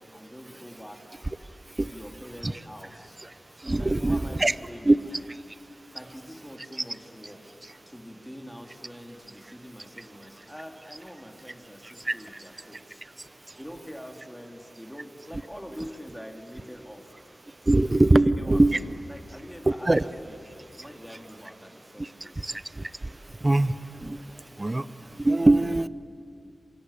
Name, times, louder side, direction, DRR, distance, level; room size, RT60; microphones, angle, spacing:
voice 1, 0.1-1.2 1.9-3.2 3.7-5.2 5.9-7.4 7.9-13.0 13.6-17.0 18.1-22.5, equal, ahead, 3 dB, 3.7 m, -44 dB
voice 2, 3.6-4.5 4.8-5.0 12.1-12.2 17.7-18.8 19.7-20.0 22.4-22.5 23.4-23.7 24.0-24.2 24.6-24.8 25.2-25.9, right 2 dB, 30° right, 16 dB, 0.9 m, -21 dB
27.0 x 24.5 x 8.7 m, 2.6 s
cardioid pair, 45°, 0 cm